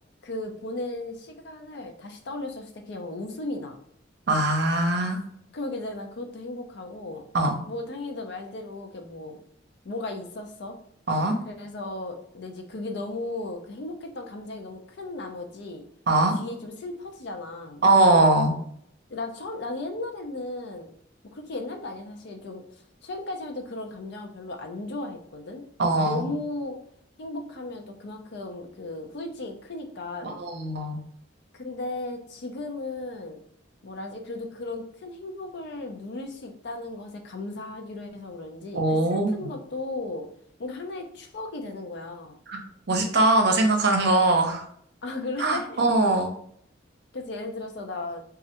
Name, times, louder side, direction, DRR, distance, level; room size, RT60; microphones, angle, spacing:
voice 1, 0.2-3.8 5.5-7.2 7.7-9.4 9.8-10.8 11.5-15.8 16.4-17.8 19.1-20.9 21.3-22.6 23.0-25.6 26.0-26.8 27.2-30.4 31.5-33.4 33.8-40.3 40.6-42.4 45.0-45.8 47.1-48.2, left 2 dB, 65° left, 4 dB, 0.5 m, -36 dB
voice 2, 4.3-5.2 7.3-7.6 11.1-11.4 16.1-16.3 17.8-18.5 25.8-26.3 30.2-31.0 38.7-39.5 42.5-42.6 42.9-44.6 45.4-46.3, right 2 dB, 60° right, 3 dB, 0.6 m, -21 dB
3.1 x 2.4 x 2.8 m, 0.67 s
head